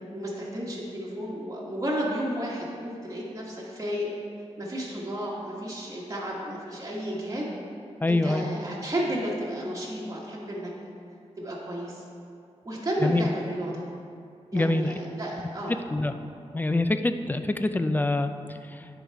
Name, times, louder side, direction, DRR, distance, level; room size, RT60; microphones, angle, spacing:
voice 1, 0.1-4.1 4.6-7.4 8.1-10.7 11.4-12.0 12.6-13.8 14.5-15.8, equal, 30° right, -6 dB, 1.3 m, -32 dB
voice 2, 8.0-8.5 13.0-13.3 14.5-15.0 15.4-15.5 15.9-16.1 16.5-18.9, left 2 dB, 15° left, 9 dB, 0.4 m, -25 dB
10.0 x 4.0 x 4.6 m, 2.4 s
wide cardioid pair, 85°, 11 cm